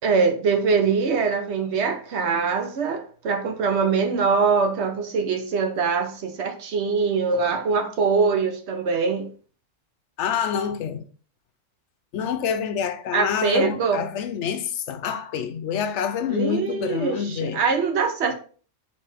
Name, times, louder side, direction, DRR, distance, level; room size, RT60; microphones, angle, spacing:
voice 1, 0.0-9.3 13.1-14.0 16.3-18.3, right 5 dB, 65° right, 1.0 m, -23 dB
voice 2, 10.2-11.0 12.1-17.6, left 7 dB, 75° left, 0.9 m, -27 dB
4.2 x 3.6 x 3.3 m
omnidirectional pair, 1.2 m